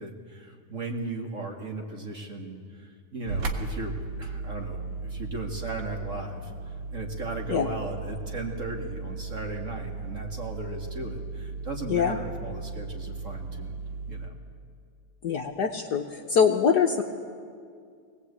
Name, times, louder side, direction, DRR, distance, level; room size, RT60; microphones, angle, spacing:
voice 1, 0.0-13.7 14.0-14.4, right 2 dB, 35° right, 1 dB, 2.5 m, -37 dB
sound 1, 3.2-14.3, right 3 dB, 60° right, 2.1 m, -36 dB
voice 2, 15.2-16.0 16.3-17.0, left 6 dB, 60° left, 3 dB, 1.3 m, -23 dB
22.5 x 18.5 x 8.5 m, 2.2 s
omnidirectional pair, 2.4 m